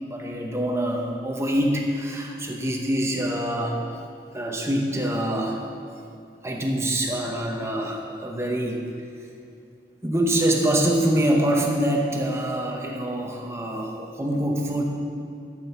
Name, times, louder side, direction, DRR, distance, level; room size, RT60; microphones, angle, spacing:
voice 1, 0.1-3.8 4.3-5.7 6.4-8.9 10.0-14.8, right 1 dB, 15° right, 1 dB, 0.9 m, -25 dB
12.0 x 7.6 x 4.5 m, 2.5 s
head